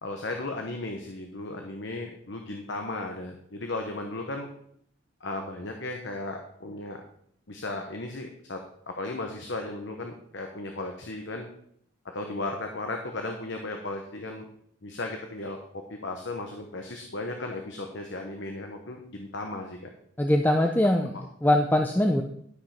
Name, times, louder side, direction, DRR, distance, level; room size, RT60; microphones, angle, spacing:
voice 1, 0.0-4.5 5.2-7.0 7.5-8.6 8.9-11.5 12.1-14.4 14.8-19.9 20.6-20.7 21.1-21.2, left 2 dB, 60° left, 3 dB, 1.1 m, -35 dB
voice 2, 20.2-21.1 21.4-22.2, left 1 dB, 10° left, 3 dB, 0.5 m, -22 dB
12.0 x 5.3 x 5.8 m, 0.68 s
head